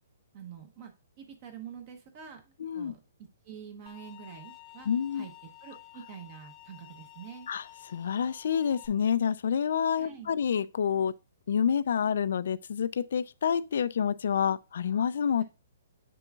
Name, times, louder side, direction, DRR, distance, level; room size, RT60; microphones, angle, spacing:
voice 1, 0.3-3.0 3.4-4.9 5.1-5.3 5.6-7.5 10.0-10.3 15.4-15.5, right 8 dB, 30° right, 0.9 m, -46 dB
voice 2, 2.6-2.9 4.9-5.3 7.5-11.1 11.5-15.4, left 7 dB, 60° left, 0.4 m, -28 dB
sound 1, 3.9-8.9, left 14 dB, 20° left, 0.7 m, -52 dB
8.3 x 6.8 x 2.4 m
hypercardioid pair, 170°, 0 cm